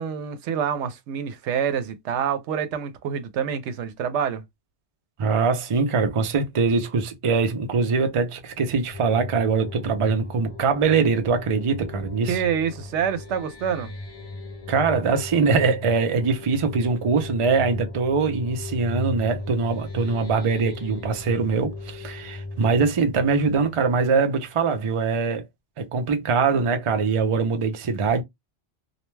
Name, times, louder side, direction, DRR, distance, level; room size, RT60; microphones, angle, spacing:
voice 1, 0.0-4.4 12.3-13.9, right 8 dB, 85° right, 0.9 m, -27 dB
voice 2, 5.2-12.4 14.7-25.4 25.8-28.2, right 4 dB, 45° right, 0.4 m, -22 dB
sound 1, 8.9-24.4, left 2 dB, 55° left, 0.3 m, -37 dB
2.3 x 2.2 x 3.1 m
omnidirectional pair, 1.2 m